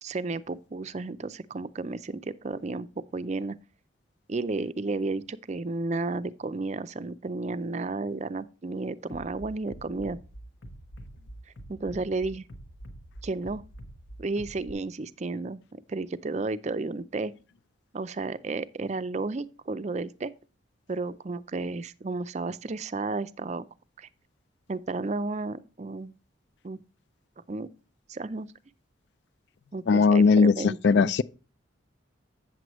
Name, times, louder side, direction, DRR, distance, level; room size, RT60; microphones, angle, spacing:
voice 1, 0.0-2.9 3.1-3.6 4.3-10.2 11.7-12.4 13.2-13.6 14.2-17.3 17.9-20.3 20.9-23.7 24.0-24.1 24.7-26.1 26.6-26.8 27.5-27.7 28.1-28.5 29.7-31.1, right 3 dB, 35° right, 0.4 m, -32 dB
Bass drum, 9.1-14.7, right 1 dB, 80° left, 1.3 m, -45 dB
voice 2, 29.9-31.2, left 5 dB, 60° left, 0.3 m, -19 dB
8.5 x 7.7 x 3.0 m
head